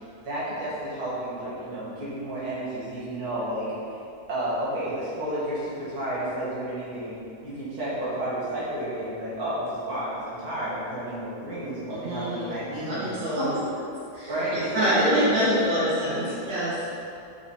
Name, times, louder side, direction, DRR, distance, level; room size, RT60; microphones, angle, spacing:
voice 1, 0.3-3.7 4.3-13.0 13.4-13.6 14.3-15.3 16.0-16.4, right 1 dB, 75° right, -10 dB, 2.2 m, -31 dB
voice 2, 11.9-13.5 14.1-14.3 14.7-16.9, equal, 60° right, -10 dB, 1.8 m, -26 dB
5.4 x 4.7 x 4.2 m, 2.6 s
omnidirectional pair, 1.6 m